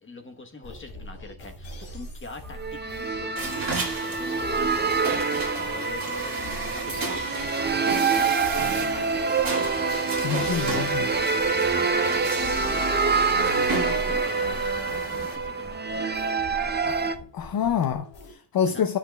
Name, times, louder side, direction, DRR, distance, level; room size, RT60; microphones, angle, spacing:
voice 1, 0.0-9.5 9.8-16.4 18.6-18.9, left 3 dB, 30° left, 1.0 m, -43 dB
sound 1, 0.6-18.3, left 1 dB, 90° left, 2.7 m, -42 dB
sound 2, 2.5-17.2, right 4 dB, 25° right, 0.5 m, -26 dB
sound 3, 3.4-15.4, right 3 dB, 50° right, 1.9 m, -34 dB
voice 2, 10.2-11.1 16.8-17.1 17.3-19.0, left 8 dB, 55° left, 0.6 m, -27 dB
10.0 x 5.8 x 2.2 m
wide cardioid pair, 130°, 43 cm